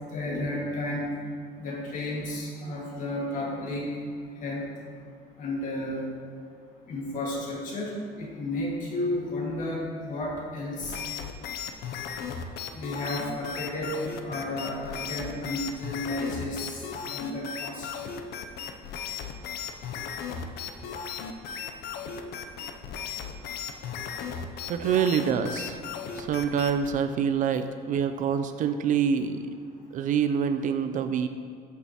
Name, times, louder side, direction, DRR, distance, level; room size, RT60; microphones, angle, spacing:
voice 1, 0.1-1.1 1.6-3.9 4.4-4.6 5.4-6.0 6.9-11.0 12.7-16.8 17.1-17.9, left 1 dB, 50° left, -3 dB, 1.8 m, -32 dB
sound 1, 10.8-26.9, left 7 dB, 65° left, 0.6 m, -36 dB
voice 2, 24.7-25.8 26.2-29.4 29.9-31.3, right 7 dB, 50° right, 9 dB, 0.4 m, -26 dB
8.3 x 6.3 x 2.9 m, 2.2 s
cardioid pair, 140°, 18 cm